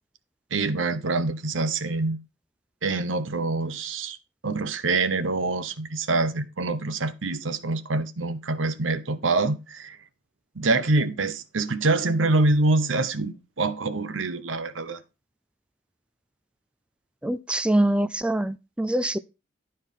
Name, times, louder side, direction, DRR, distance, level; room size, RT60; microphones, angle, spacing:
voice 1, 0.5-2.2 2.8-4.2 4.4-10.0 10.6-15.0, right 3 dB, 85° right, 0.9 m, -25 dB
voice 2, 17.2-19.2, right 1 dB, 5° right, 0.4 m, -24 dB
12.0 x 4.4 x 5.4 m
head